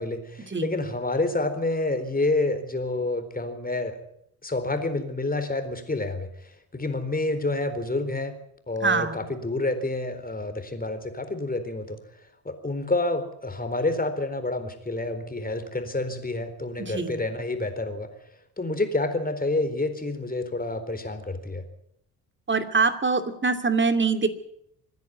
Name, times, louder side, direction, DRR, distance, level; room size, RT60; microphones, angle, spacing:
voice 1, 0.0-4.0 4.4-8.4 8.7-12.0 12.4-18.1 18.6-21.6, left 2 dB, 20° left, 8 dB, 4.1 m, -28 dB
voice 2, 8.8-9.3 16.8-17.2 22.5-24.3, right 4 dB, 25° right, 8 dB, 2.6 m, -24 dB
26.0 x 10.5 x 9.7 m, 0.76 s
hypercardioid pair, 55°, 47 cm